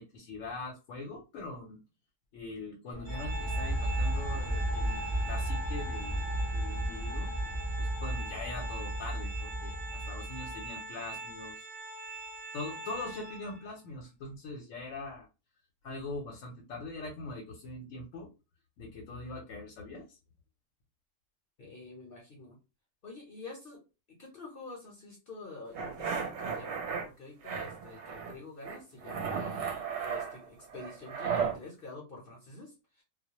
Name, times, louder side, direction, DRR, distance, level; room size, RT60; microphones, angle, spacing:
voice 1, 0.0-1.8 2.3-6.2 6.5-7.3 7.8-11.6 12.5-15.3 15.8-18.3 18.8-20.2, left 2 dB, 80° left, 0 dB, 1.0 m, -42 dB
sound 1, 2.9-10.7, right 1 dB, 25° left, 0.4 m, -33 dB
Organ, 3.1-13.8, right 3 dB, 40° right, 0.8 m, -43 dB
voice 2, 21.6-22.6 23.0-23.8 24.1-33.0, left 3 dB, 55° left, -1 dB, 0.8 m, -47 dB
sound 2, 25.7-27.0 27.4-28.3 28.6-31.6, right 6 dB, 70° right, 0.8 m, -35 dB
2.3 x 2.0 x 2.8 m, 0.30 s
omnidirectional pair, 1.3 m